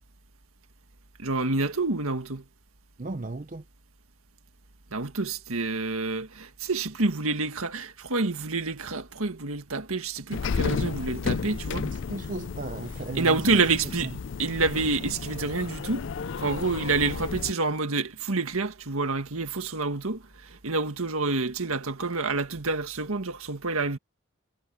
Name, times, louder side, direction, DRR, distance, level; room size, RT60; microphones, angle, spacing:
voice 1, 1.2-2.5 4.9-11.9 13.2-14.1 14.4-16.1 16.4-24.0, right 3 dB, 80° right, 1.9 m, -28 dB
voice 2, 3.0-3.6 11.8-13.6, right 2 dB, 35° right, 0.6 m, -35 dB
sound 1, 10.3-17.5, left 5 dB, 55° left, 0.4 m, -33 dB
head